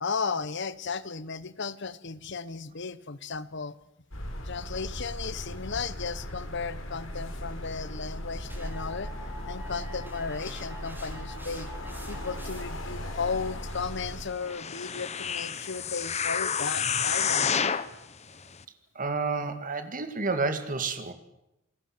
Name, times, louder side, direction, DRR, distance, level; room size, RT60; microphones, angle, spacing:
voice 1, 0.0-3.8 4.4-9.1 9.5-11.7 12.1-17.7, left 5 dB, 60° left, 16 dB, 1.0 m, -35 dB
sound 1, 4.1-14.2, left 1 dB, 85° left, 4.9 m, -38 dB
sound 2, 8.5-12.9, right 1 dB, 10° right, 5.4 m, -47 dB
sound 3, 14.4-17.9 18.5-18.6, left 7 dB, 35° left, 1.0 m, -29 dB
voice 2, 19.0-21.1, right 4 dB, 45° right, 9 dB, 2.1 m, -30 dB
28.0 x 19.5 x 7.8 m, 0.91 s
head